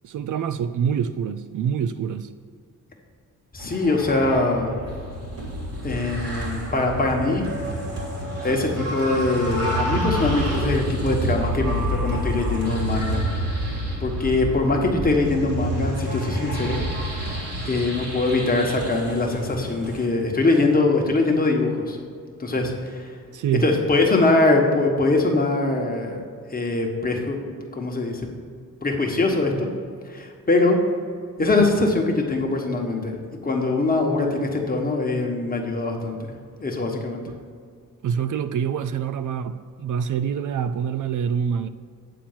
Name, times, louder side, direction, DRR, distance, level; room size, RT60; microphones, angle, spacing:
voice 1, 0.0-2.3 23.3-23.7 37.3-37.4 38.0-41.7, right 7 dB, 65° right, 0.4 m, -26 dB
voice 2, 3.5-4.7 5.8-7.4 8.4-13.2 14.0-16.8 17.6-22.0 22.4-23.1 23.6-26.2 26.5-27.4 27.7-28.2 28.8-29.7 30.1-30.8 31.4-33.1 33.4-36.2 36.6-37.2, left 2 dB, 25° left, 1.3 m, -22 dB
sound 1, 3.6-20.1, right 1 dB, 45° right, 2.4 m, -28 dB
8.9 x 4.4 x 7.3 m
wide cardioid pair, 120°, 34 cm